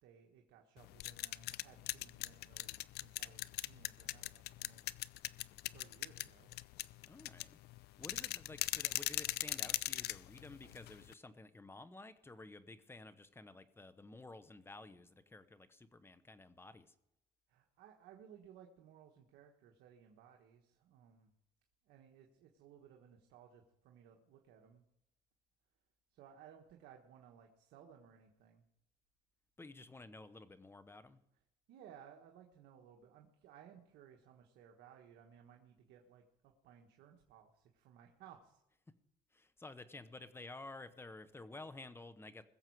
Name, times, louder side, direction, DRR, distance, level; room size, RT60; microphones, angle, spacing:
voice 1, 0.0-4.9 5.2-6.5 17.5-21.3 21.8-24.8 26.1-28.6 31.7-38.6, right 8 dB, 85° right, 2 dB, 1.4 m, -60 dB
sound 1, 0.8-11.1, left 16 dB, 70° left, 0.4 m, -41 dB
voice 2, 7.1-16.9 29.6-31.2 39.3-42.4, left 2 dB, 15° left, 12 dB, 1.0 m, -53 dB
21.0 x 7.3 x 4.7 m, 0.86 s
cardioid pair, 110°, 17 cm